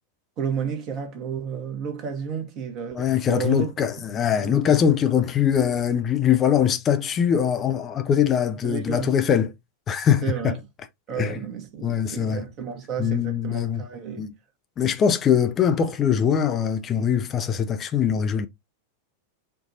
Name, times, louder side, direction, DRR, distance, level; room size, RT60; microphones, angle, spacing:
voice 1, 0.4-3.7 4.4-4.8 8.6-9.1 10.2-10.6 11.1-14.3, right 7 dB, 35° right, 1.3 m, -31 dB
voice 2, 2.9-9.5 9.9-10.6 11.2-11.4 11.8-12.4 13.0-13.8 14.2-14.3 14.8-18.5, left 8 dB, 25° left, 0.5 m, -22 dB
4.5 x 2.6 x 3.9 m
figure-of-eight pair, 90°, 0 cm